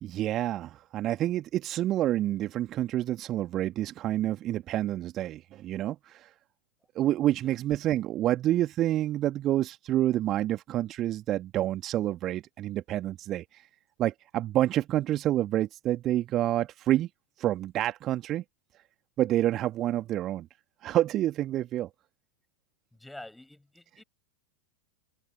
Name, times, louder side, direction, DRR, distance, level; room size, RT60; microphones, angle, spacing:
voice 1, 0.0-6.3 7.0-13.7 14.0-17.1 17.4-18.4 19.2-20.5 20.8-21.9, right 13 dB, 30° right, 1.8 m, -28 dB
voice 2, 22.9-24.0, left 1 dB, 5° left, 7.8 m, -47 dB
figure-of-eight pair, 90°, 0 cm